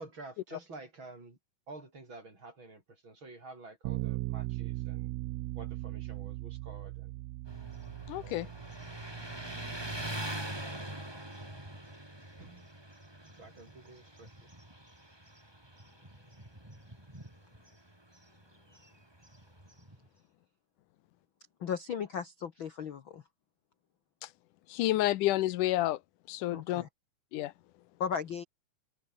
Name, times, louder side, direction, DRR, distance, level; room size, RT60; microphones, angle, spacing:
voice 1, 0.0-1.4 1.7-5.1 5.5-7.1 8.2-8.5 12.4-12.7 13.3-14.3, right 2 dB, 40° right, 6.8 m, -50 dB
Bass guitar, 3.8-10.1, right 20 dB, 85° right, 1.5 m, -39 dB
Motorcycle, 7.5-20.1, right 1 dB, 10° right, 3.4 m, -44 dB
voice 2, 8.1-8.5 24.7-26.0 26.3-26.8 27.3-27.5, left 15 dB, 85° left, 2.5 m, -29 dB
voice 3, 21.6-23.2 26.5-26.9 28.0-28.4, left 7 dB, 50° left, 1.7 m, -36 dB
omnidirectional pair, 3.5 m